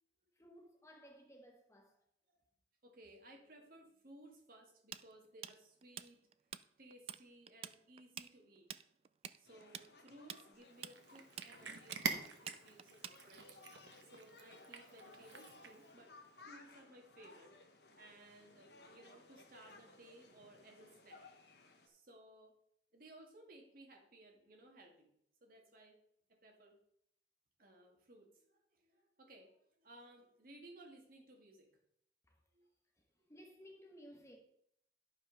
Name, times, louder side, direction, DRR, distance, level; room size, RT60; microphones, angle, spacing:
voice 1, 0.4-2.0 32.3-32.4 33.0-34.4, equal, 15° left, 1.2 m, -58 dB
voice 2, 2.8-6.2 6.8-8.8 9.4-13.6 14.0-16.1 16.4-17.6 18.0-21.3 21.8-22.5 22.9-25.1 25.4-26.0 26.3-26.8 27.6-31.8 32.5-32.7, right 1 dB, 50° right, 2.2 m, -60 dB
Tools, 4.9-6.6 6.9-7.2 7.5-13.5, right 9 dB, 35° right, 0.3 m, -48 dB
sound 1, 9.4-21.9, left 3 dB, 65° left, 1.3 m, -61 dB
Cat, 10.7-15.9, right 5 dB, 80° right, 1.2 m, -46 dB
11.5 x 5.4 x 5.3 m
head